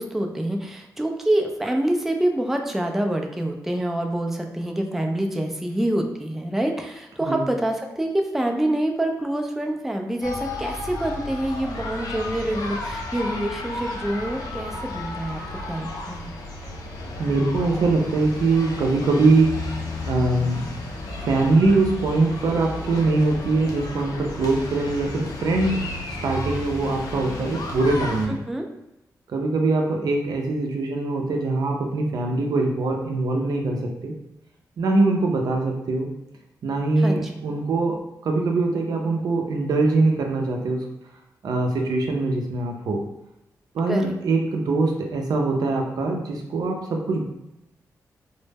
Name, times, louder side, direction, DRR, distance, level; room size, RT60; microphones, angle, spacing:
voice 1, 0.0-15.4 15.7-16.3 28.3-28.7 37.0-37.3 43.9-44.1, right 1 dB, 5° right, 3 dB, 0.3 m, -26 dB
sound 1, 10.2-28.3, left 2 dB, 70° left, 0.4 m, -33 dB
voice 2, 17.2-19.5 20.1-20.6 21.2-25.8 26.2-28.4 29.3-33.8 34.0-34.1 34.8-36.1 36.6-38.0 38.2-40.8 41.4-43.0 43.8-46.2 46.5-47.2, right 3 dB, 70° right, 1 dB, 0.5 m, -22 dB
2.0 x 2.0 x 3.3 m, 0.89 s
cardioid pair, 70°, 7 cm